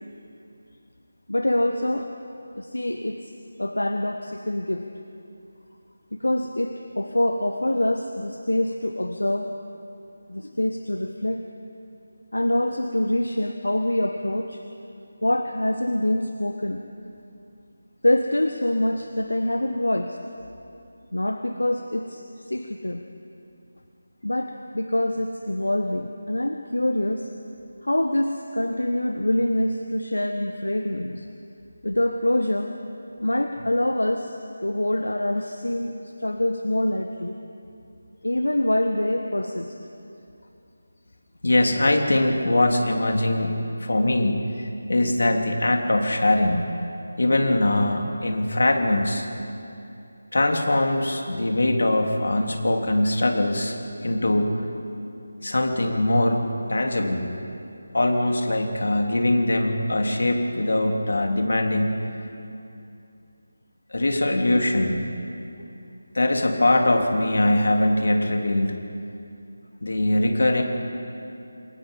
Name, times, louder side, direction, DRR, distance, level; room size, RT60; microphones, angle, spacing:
voice 1, 1.3-2.1 2.6-3.3 3.6-4.9 6.1-9.5 10.3-11.4 12.3-14.6 15.2-16.8 18.0-20.2 21.1-23.0 24.2-27.3 27.8-31.3 31.8-32.7 33.2-34.4 34.6-37.4 38.2-39.8 54.0-54.1 65.6-65.7, left 1 dB, 75° left, 6 dB, 1.4 m, -25 dB
voice 2, 41.4-43.5 43.8-46.6 47.2-49.3 50.3-53.8 54.0-54.6 55.4-56.4 56.7-57.3 57.9-62.0 63.9-65.0 66.1-68.8 69.8-70.6, left 1 dB, 60° left, 3 dB, 3.2 m, -22 dB
28.0 x 22.0 x 5.5 m, 2.7 s
figure-of-eight pair, 160°, 0 cm